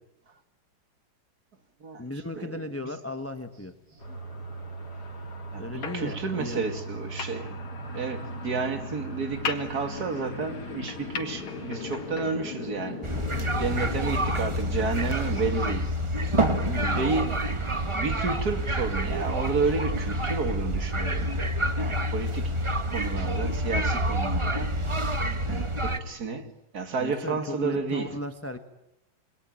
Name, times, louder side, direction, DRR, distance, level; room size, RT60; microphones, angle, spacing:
voice 1, 2.0-3.7 5.6-6.7 16.4-17.2 27.0-28.6, left 1 dB, 10° left, 1.1 m, -36 dB
sound 1, 4.0-15.2, equal, 50° left, 4.3 m, -38 dB
voice 2, 5.5-7.6 7.9-13.1 13.6-15.9 16.8-17.4 17.9-21.4 21.7-22.5 22.9-24.8 25.5-28.1, right 4 dB, 50° right, 2.8 m, -31 dB
sound 2, 5.8-12.3, left 6 dB, 90° left, 3.0 m, -40 dB
sound 3, 13.0-26.0, equal, 15° right, 1.2 m, -28 dB
27.5 x 24.5 x 9.0 m
omnidirectional pair, 2.2 m